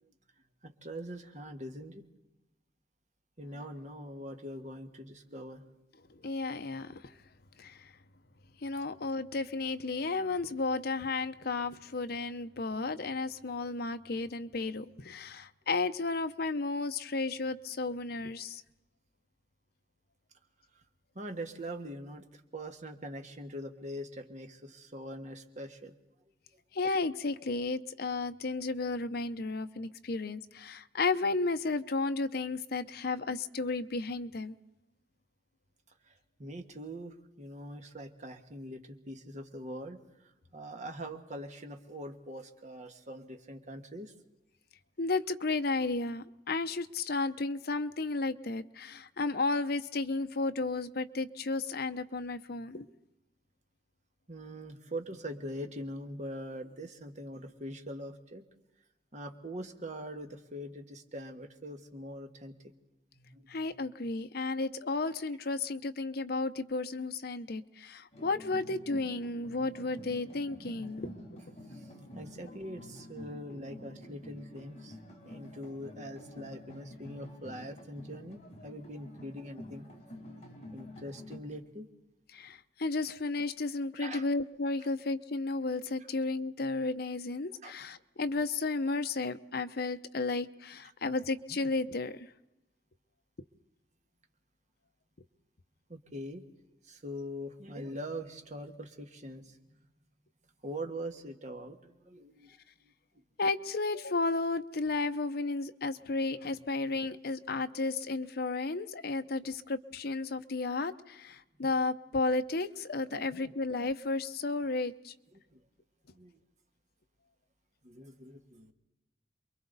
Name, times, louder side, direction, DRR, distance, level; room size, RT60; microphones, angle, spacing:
voice 1, 0.6-2.0 3.4-5.6 21.1-25.9 36.1-36.2 36.4-44.1 54.3-58.4 59.1-62.5 63.1-63.6 71.7-71.9 72.1-75.0 75.2-79.9 80.7-81.9 84.0-84.3 87.6-87.7 95.9-96.4 96.8-99.6 100.6-102.5 102.8-102.9 113.1-113.2 115.3-115.6 116.1-116.4 117.8-118.7, equal, 40° right, 5 dB, 1.6 m, -43 dB
voice 2, 6.2-7.0 7.6-7.9 8.6-18.6 26.7-34.5 45.0-52.9 63.5-71.2 82.3-92.3 103.4-115.1, left 3 dB, 60° left, 9 dB, 0.8 m, -33 dB
sound 1, 68.1-81.4, left 1 dB, 40° left, 4.4 m, -49 dB
28.0 x 22.5 x 4.1 m, 0.98 s
head